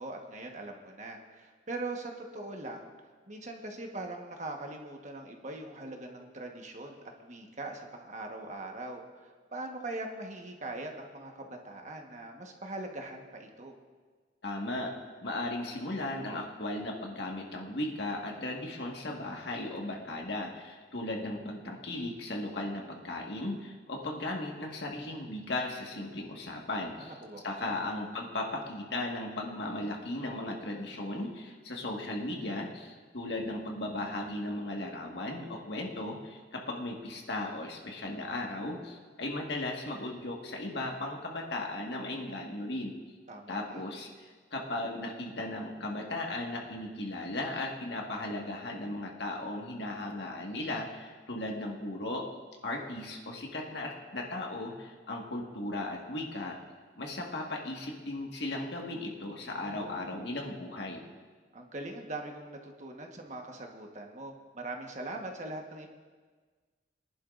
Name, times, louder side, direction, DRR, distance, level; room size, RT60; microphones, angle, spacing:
voice 1, 0.0-2.9 3.3-13.7 26.9-27.8 43.3-43.8 59.4-60.3 61.5-65.9, right 2 dB, 40° right, 2 dB, 1.3 m, -41 dB
voice 2, 14.4-14.9 15.2-27.1 27.4-42.9 43.5-52.3 52.6-56.6 57.0-61.0, left 2 dB, 65° left, 0 dB, 1.7 m, -36 dB
22.5 x 11.0 x 2.5 m, 1.5 s
head